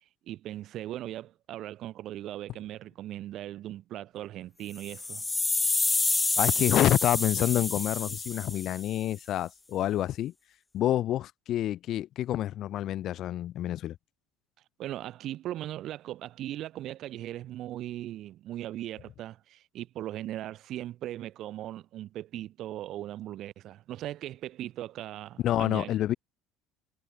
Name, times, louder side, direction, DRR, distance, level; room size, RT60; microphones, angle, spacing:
voice 1, 0.3-5.2 14.8-26.0, right 13 dB, 55° right, 3.6 m, -39 dB
sound 1, 4.8-9.0, left 3 dB, 15° left, 0.4 m, -28 dB
voice 2, 6.4-10.3 10.7-14.0 25.4-26.1, left 12 dB, 55° left, 1.1 m, -28 dB
supercardioid pair, 105°, 0 cm